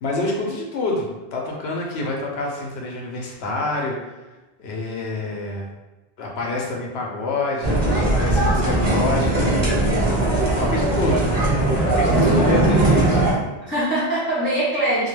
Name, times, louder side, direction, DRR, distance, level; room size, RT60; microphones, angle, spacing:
voice 1, 0.0-4.2 4.6-5.7 6.2-9.6 10.5-11.3 11.8-13.2, left 2 dB, 80° left, -1 dB, 0.9 m, -27 dB
sound 1, 7.6-13.3, right 2 dB, 30° right, 0.8 m, -19 dB
voice 2, 12.1-12.8 13.6-15.1, right 1 dB, 15° left, -10 dB, 0.4 m, -23 dB
2.2 x 2.2 x 3.1 m, 1.1 s
omnidirectional pair, 1.1 m